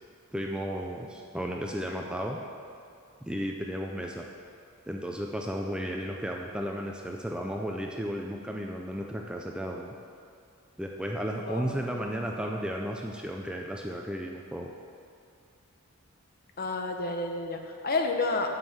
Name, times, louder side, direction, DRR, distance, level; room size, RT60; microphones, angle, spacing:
voice 1, 0.3-2.4 3.2-4.3 4.9-9.9 10.8-14.7, equal, 5° right, 0 dB, 0.4 m, -34 dB
voice 2, 11.4-11.9 16.6-18.5, left 3 dB, 40° left, 3 dB, 0.8 m, -30 dB
8.1 x 5.5 x 7.1 m, 2.4 s
head